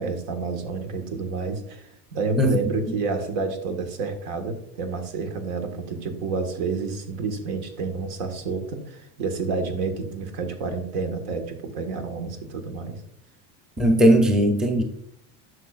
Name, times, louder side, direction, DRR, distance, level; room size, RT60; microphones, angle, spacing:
voice 1, 0.0-13.0, right 4 dB, 85° right, 6 dB, 1.6 m, -29 dB
voice 2, 13.8-14.8, right 1 dB, ahead, 3 dB, 0.5 m, -18 dB
11.0 x 6.4 x 2.4 m, 0.71 s
cardioid pair, 170°, 36 cm